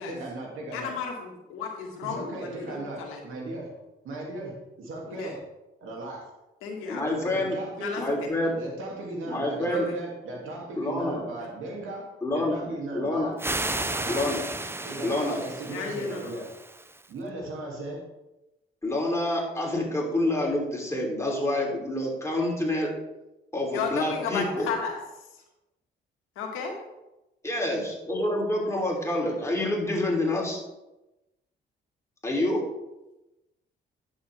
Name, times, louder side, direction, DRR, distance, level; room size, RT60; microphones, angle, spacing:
voice 1, 0.0-0.9 2.0-3.8 4.0-5.4 5.8-6.3 7.3-7.9 8.4-12.1 12.3-13.3 13.8-14.2 14.8-16.5 17.1-18.0, right 2 dB, 75° right, -1 dB, 2.7 m, -37 dB
voice 2, 0.7-3.2 5.1-5.3 6.6-7.3 7.8-8.0 9.7-9.8 11.4-11.5 15.7-16.3 23.7-25.0 26.4-26.7, left 5 dB, 90° left, 1 dB, 1.8 m, -33 dB
voice 3, 6.9-7.6 7.9-8.5 9.2-9.9 10.7-11.2 12.2-12.6 12.9-13.3 14.1-14.5 15.0-15.4 18.8-22.9 23.5-24.7 27.4-30.6 32.2-32.6, left 1 dB, 15° left, -2 dB, 3.3 m, -27 dB
sound 1, 13.4-17.1, right 2 dB, 10° right, 0.6 m, -33 dB
10.0 x 7.1 x 3.5 m, 0.97 s
supercardioid pair, 70°, 21 cm